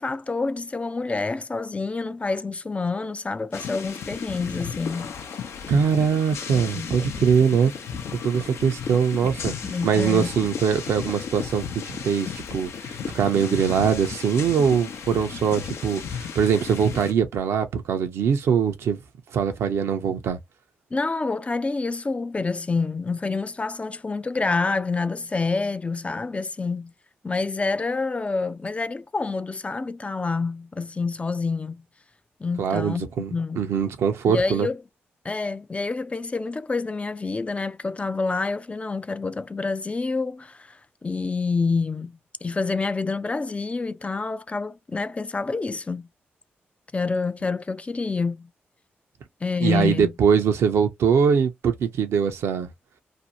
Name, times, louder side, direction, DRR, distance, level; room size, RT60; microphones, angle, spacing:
voice 1, 0.0-5.2 6.8-6.9 9.6-10.3 20.9-26.9 27.2-31.8 32.4-33.0 33.3-33.6 34.3-34.8 35.2-46.1 46.9-48.5 49.4-50.1, left 4 dB, 30° left, 0.4 m, -27 dB
sound 1, 3.5-17.1, left 7 dB, 80° left, 0.6 m, -34 dB
voice 2, 5.7-7.7 8.1-9.5 9.8-19.0 19.3-20.4 32.6-34.7 49.6-52.7, right 7 dB, 80° right, 0.6 m, -22 dB
2.6 x 2.2 x 2.6 m
supercardioid pair, 50°, 4 cm